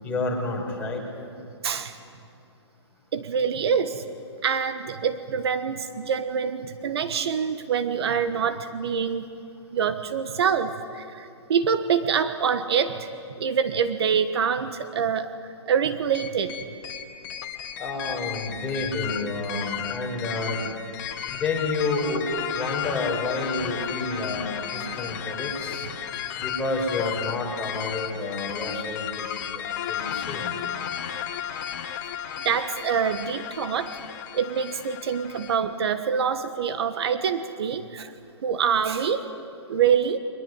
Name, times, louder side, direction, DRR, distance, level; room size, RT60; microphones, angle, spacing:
voice 1, 0.0-1.0 17.8-20.7 21.3-22.3 22.5-25.9 26.4-30.5, left 2 dB, 10° left, -3 dB, 5.2 m, -30 dB
voice 2, 1.6-2.0 3.1-4.0 4.4-9.3 9.7-13.1 13.4-15.3 15.7-16.5 32.4-33.9 34.3-38.1 38.4-39.3 39.7-40.2, right 7 dB, 60° right, 10 dB, 1.4 m, -25 dB
sound 1, 16.1-35.6, left 9 dB, 40° left, 1.8 m, -34 dB
23.0 x 21.0 x 9.7 m, 2.6 s
hypercardioid pair, 150°, 15 cm